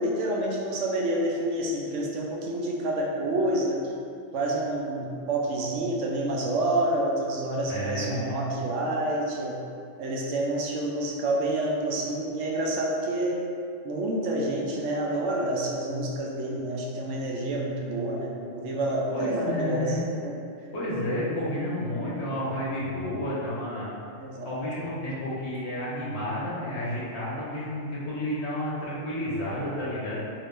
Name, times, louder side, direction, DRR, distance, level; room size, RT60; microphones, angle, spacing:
voice 1, 0.0-3.8 4.3-9.6 10.0-13.4 13.8-20.0 20.2-20.3 24.1-24.5, right 1 dB, 75° right, -2 dB, 0.9 m, -28 dB
voice 2, 7.7-8.4 19.1-20.1 20.7-23.9 24.4-30.2, left 1 dB, 60° left, -8 dB, 1.3 m, -31 dB
3.7 x 2.7 x 3.3 m, 2.5 s
omnidirectional pair, 1.3 m